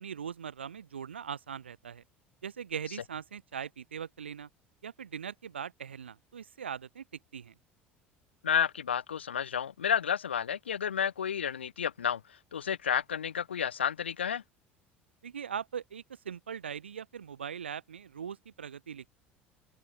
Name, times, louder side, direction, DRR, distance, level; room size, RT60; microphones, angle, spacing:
voice 1, 0.0-2.0 2.4-4.5 4.8-7.0 7.3-7.5 15.2-19.0, right 7 dB, 75° right, 1.4 m, -40 dB
voice 2, 8.4-12.2 12.5-14.4, left 8 dB, 75° left, 0.7 m, -31 dB
open air
figure-of-eight pair, 65°, 6 cm